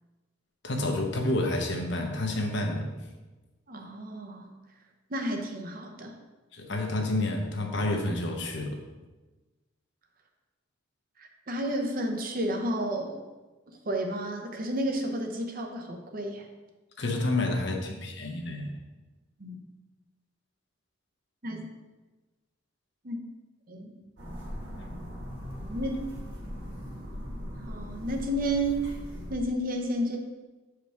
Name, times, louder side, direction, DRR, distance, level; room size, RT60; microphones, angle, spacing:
voice 1, 0.6-2.9 6.5-8.8 17.0-18.7 24.8-24.9, left 2 dB, 65° left, 2 dB, 1.0 m, -29 dB
voice 2, 3.7-4.5 5.1-6.1 11.2-13.2 13.9-16.5 19.4-19.6 21.4-21.6 23.0-23.2 23.7-24.0 25.6-26.1 27.7-29.0 29.3-30.2, right 1 dB, 50° right, 2 dB, 0.8 m, -31 dB
sound 1, 24.2-29.3, equal, 65° right, 2.0 m, -39 dB
6.9 x 4.8 x 3.5 m, 1.2 s
head